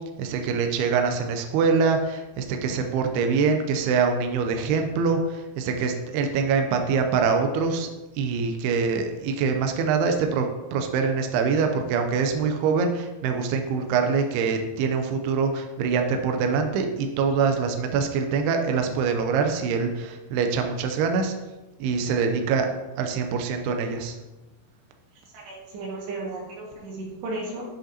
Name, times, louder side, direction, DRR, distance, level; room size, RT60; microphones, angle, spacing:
voice 1, 0.2-21.3 21.8-22.7 23.0-24.2, right 5 dB, 85° right, 5 dB, 2.3 m, -24 dB
voice 2, 25.3-27.7, right 2 dB, 70° right, -3 dB, 3.7 m, -34 dB
7.7 x 7.6 x 2.8 m, 1.1 s
omnidirectional pair, 5.3 m